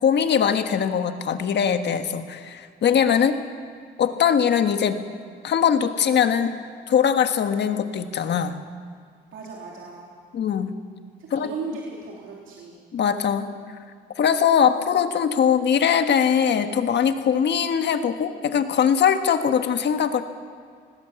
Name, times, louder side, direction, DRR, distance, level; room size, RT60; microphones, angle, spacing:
voice 1, 0.0-3.4 4.0-5.0 5.4-6.5 6.9-8.6 10.3-10.7 11.3-11.5 12.9-13.5 14.2-20.2, left 8 dB, 60° left, 8 dB, 1.5 m, -21 dB
voice 2, 9.3-10.1 11.2-12.8, right 4 dB, 80° right, -3 dB, 3.3 m, -36 dB
19.5 x 16.5 x 8.2 m, 2.1 s
cardioid pair, 90°, 20 cm